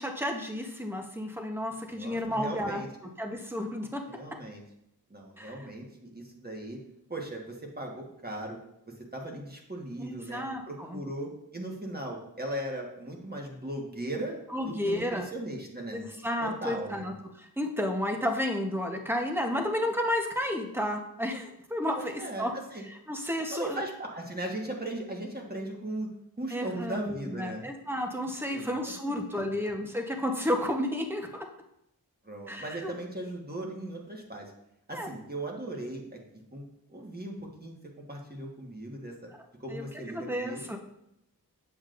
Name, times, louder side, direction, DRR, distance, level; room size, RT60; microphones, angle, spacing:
voice 1, 0.0-2.8 3.2-4.0 5.4-5.5 10.0-11.0 14.5-15.3 15.9-22.5 23.1-23.8 26.5-31.3 32.5-32.9 34.9-35.1 39.7-39.8 40.1-40.8, left 1 dB, 5° right, 3 dB, 0.9 m, -32 dB
voice 2, 1.9-2.9 4.0-4.6 5.1-6.8 7.1-8.6 8.9-16.0 16.4-17.1 21.9-22.8 23.5-26.1 26.4-27.7 28.5-29.5 32.2-34.5 34.9-36.2 36.5-37.7 38.1-39.3 39.6-40.8, right 1 dB, 25° right, -1 dB, 1.4 m, -38 dB
7.3 x 7.2 x 2.5 m, 0.81 s
wide cardioid pair, 70°, 38 cm